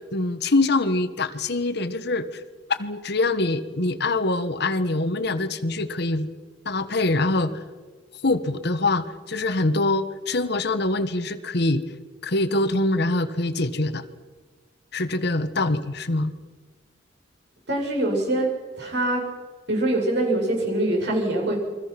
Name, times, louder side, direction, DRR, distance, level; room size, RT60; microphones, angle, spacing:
voice 1, 0.1-2.4 2.7-6.3 6.6-7.5 8.2-11.8 12.2-14.0 14.9-16.3, left 2 dB, 60° left, 11 dB, 1.4 m, -24 dB
voice 2, 17.7-18.5 18.8-19.3 19.7-21.6, right 1 dB, 60° right, -1 dB, 7.8 m, -23 dB
29.5 x 23.5 x 6.1 m, 1.4 s
head